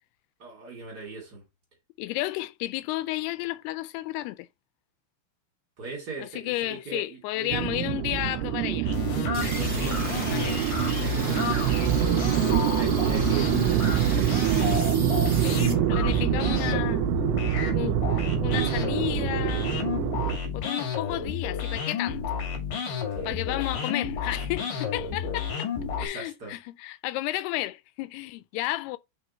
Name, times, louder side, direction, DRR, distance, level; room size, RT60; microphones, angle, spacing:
voice 1, 0.4-1.4 5.8-7.7 9.2-12.2 12.7-14.3 23.1-23.4 26.0-26.6, right 3 dB, 30° right, 2.2 m, -40 dB
voice 2, 2.0-4.5 6.2-8.9 9.4-10.7 15.4-17.1 17.7-19.8 20.5-22.4 23.2-25.7 26.0-29.0, left 17 dB, 85° left, 2.6 m, -32 dB
sound 1, 7.5-20.4, right 14 dB, 90° right, 2.6 m, -26 dB
sound 2, 8.8-26.1, left 6 dB, 60° left, 3.8 m, -31 dB
sound 3, 9.3-15.7, right 2 dB, 60° right, 0.5 m, -36 dB
6.3 x 4.9 x 4.3 m
omnidirectional pair, 4.6 m